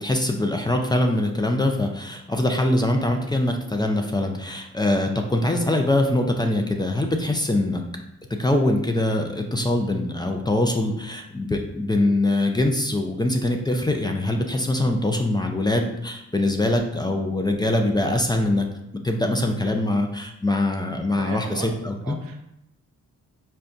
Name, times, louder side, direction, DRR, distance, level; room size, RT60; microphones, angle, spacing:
voice 1, 0.0-7.8 8.4-18.7 18.9-22.2, left 1 dB, 10° left, 2 dB, 0.4 m, -23 dB
voice 2, 21.1-21.7 22.0-22.5, right 6 dB, 75° right, 4 dB, 0.6 m, -36 dB
4.2 x 2.2 x 2.5 m, 0.82 s
supercardioid pair, 45°, 35 cm